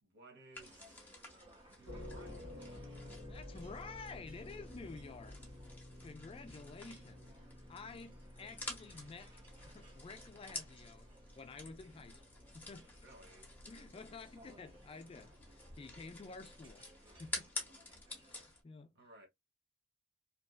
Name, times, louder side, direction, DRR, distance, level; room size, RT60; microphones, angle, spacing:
voice 1, 0.0-1.0 1.7-2.6 7.2-7.6 13.0-13.5 17.7-17.9 18.9-19.3, right 2 dB, 55° right, 1.0 m, -60 dB
sound 1, 0.5-18.6, left 2 dB, 10° left, 1.0 m, -51 dB
sound 2, 0.6-18.4, right 1 dB, 25° right, 0.9 m, -63 dB
sound 3, 1.8-16.6, left 1 dB, 70° right, 1.5 m, -53 dB
voice 2, 3.3-5.4 6.0-7.3 7.7-11.1 11.4-12.2 12.5-12.9 13.7-15.3 15.8-16.9 17.2-17.5 18.2-18.9, left 4 dB, 25° left, 0.3 m, -51 dB
2.8 x 2.5 x 2.2 m
head